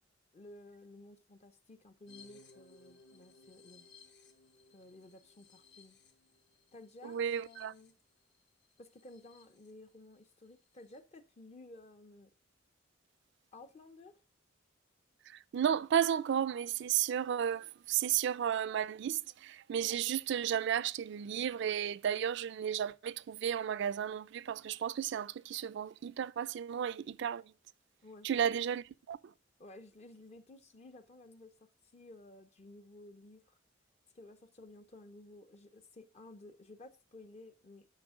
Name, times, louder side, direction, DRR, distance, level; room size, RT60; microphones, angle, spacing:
voice 1, 0.3-3.9 4.7-6.0 6.7-8.0 8.8-12.3 13.5-14.2 28.0-28.6 29.6-33.6 34.1-37.9, left 2 dB, 35° left, 0.5 m, -55 dB
sound 1, 2.1-9.7 10.1-10.2 10.5-11.0, left 4 dB, 65° left, 1.2 m, -61 dB
voice 2, 7.0-7.7 15.3-27.4 28.2-29.2, right 9 dB, 65° right, 0.3 m, -33 dB
9.7 x 5.5 x 3.6 m
head